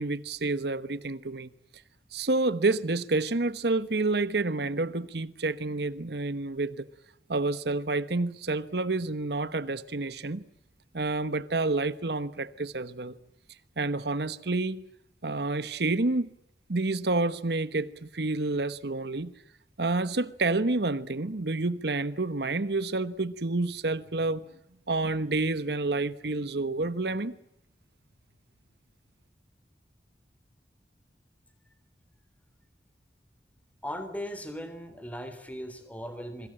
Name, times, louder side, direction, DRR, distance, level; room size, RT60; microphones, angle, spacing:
voice 1, 0.0-1.5 2.1-6.9 7.3-10.4 10.9-13.2 13.8-14.8 15.2-16.3 16.7-19.3 19.8-24.4 24.9-27.4, right 2 dB, 70° right, 1.1 m, -29 dB
voice 2, 33.8-36.5, equal, 10° left, 3.6 m, -38 dB
26.5 x 24.0 x 8.8 m
head